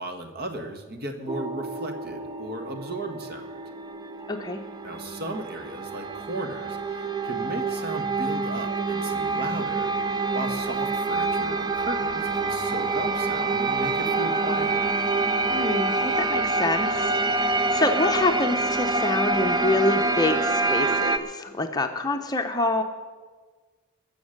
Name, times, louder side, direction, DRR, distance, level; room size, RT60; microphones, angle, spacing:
voice 1, 0.0-3.5 4.8-9.9 10.3-14.9, right 1 dB, 45° right, 6 dB, 1.5 m, -35 dB
sound 1, 1.3-21.2, right 3 dB, 20° right, 0.5 m, -26 dB
voice 2, 4.3-4.6 15.5-22.8, left 2 dB, 20° left, 5 dB, 0.7 m, -26 dB
21.0 x 7.2 x 6.6 m, 1.4 s
head